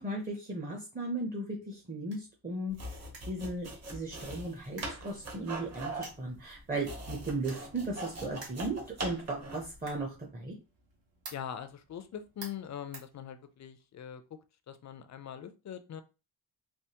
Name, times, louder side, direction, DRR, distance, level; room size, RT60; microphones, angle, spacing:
voice 1, 0.0-2.8 3.3-10.5, right 2 dB, 20° right, 0 dB, 0.7 m, -36 dB
sound 1, 1.5-13.8, right 3 dB, 65° right, 1.5 m, -55 dB
sound 2, 2.7-9.8, right 1 dB, 35° right, 1.0 m, -41 dB
voice 2, 11.3-14.2 14.7-16.0, left 9 dB, 40° left, 9 dB, 0.4 m, -42 dB
3.4 x 3.0 x 2.9 m, 0.30 s
wide cardioid pair, 145°, 47 cm